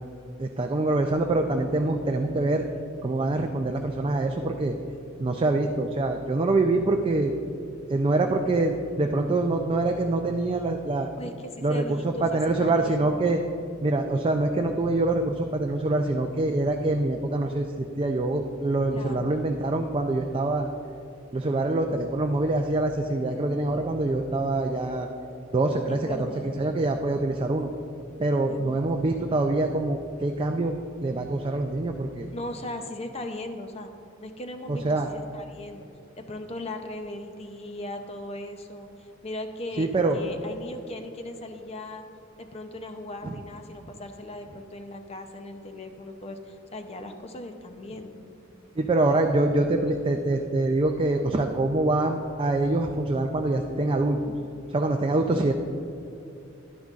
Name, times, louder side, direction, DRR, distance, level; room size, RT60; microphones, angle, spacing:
voice 1, 0.4-2.6 3.0-4.8 5.2-7.3 7.9-11.1 11.6-13.4 13.8-17.7 18.0-20.7 21.3-25.1 25.5-27.7 28.2-32.3 34.7-35.1 39.8-40.2 43.2-43.4 48.8-54.2 54.7-55.5, right 2 dB, 25° right, 3 dB, 0.4 m, -25 dB
voice 2, 11.2-13.1 18.9-19.3 25.9-26.6 28.5-28.8 32.3-33.9 34.2-35.9 36.2-42.1 42.4-48.2, left 1 dB, 30° left, 6 dB, 0.6 m, -38 dB
11.5 x 10.0 x 2.4 m, 2.6 s
head